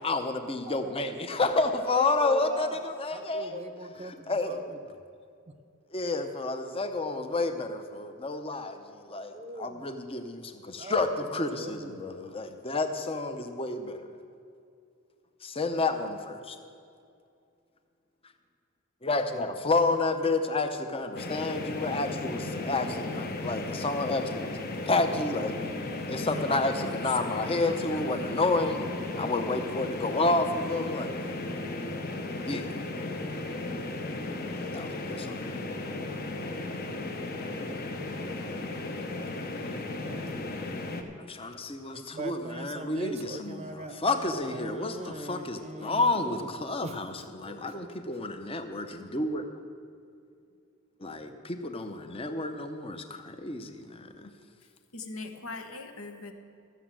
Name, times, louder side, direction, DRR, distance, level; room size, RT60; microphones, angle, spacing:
voice 1, 0.0-3.6 4.0-4.7 5.9-14.2 15.4-16.6 18.2-18.3 19.0-25.6 26.1-28.9 29.2-31.1 32.4-32.7 34.7-35.4 41.2-49.5 51.0-54.3, left 3 dB, 25° left, 0.7 m, -30 dB
voice 2, 0.7-1.2 1.9-2.8 3.1-4.8 5.5-5.6 9.3-10.0 10.8-12.1 22.8-23.4 25.0-26.3 39.5-40.5 41.9-46.5 46.8-47.0 47.4-47.8, right 2 dB, 30° right, 0.7 m, -42 dB
sound 1, 21.1-41.0, left 2 dB, 45° left, 1.0 m, -35 dB
voice 3, 26.2-28.3 54.9-56.3, left 3 dB, 80° left, 1.2 m, -41 dB
13.5 x 7.0 x 7.5 m
head